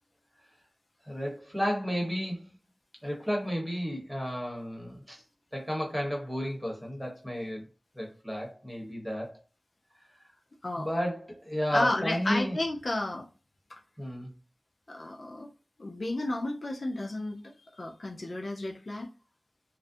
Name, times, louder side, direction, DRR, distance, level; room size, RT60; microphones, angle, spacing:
voice 1, 1.0-2.6 3.0-5.2 5.5-7.6 7.9-9.4 10.8-12.6 14.0-14.3, equal, ahead, 1.1 m, -32 dB
voice 2, 11.7-13.3 13.7-13.8 14.9-15.5 15.8-19.1, left 1 dB, 55° left, 0.4 m, -32 dB
2.5 x 2.1 x 2.5 m
wide cardioid pair, 55°, 0 cm